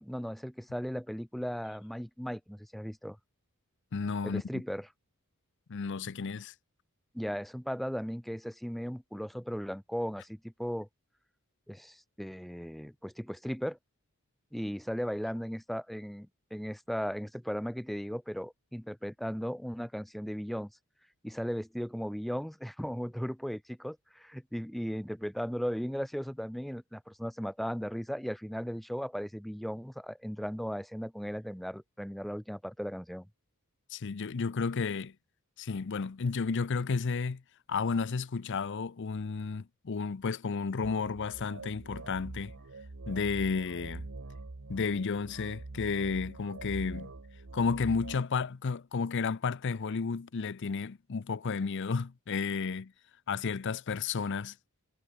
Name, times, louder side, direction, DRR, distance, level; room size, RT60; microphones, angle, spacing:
voice 1, 0.0-3.2 4.2-4.9 7.1-10.9 11.7-13.8 14.5-20.7 21.2-33.3, equal, ahead, 0.3 m, -37 dB
voice 2, 3.9-4.6 5.7-6.5 33.9-35.1 35.6-37.4 37.7-42.6 43.1-44.1 44.7-47.1 47.5-52.9 53.3-54.6, left 5 dB, 55° left, 0.5 m, -32 dB
sound 1, 40.8-48.2, right 2 dB, 60° right, 1.1 m, -44 dB
head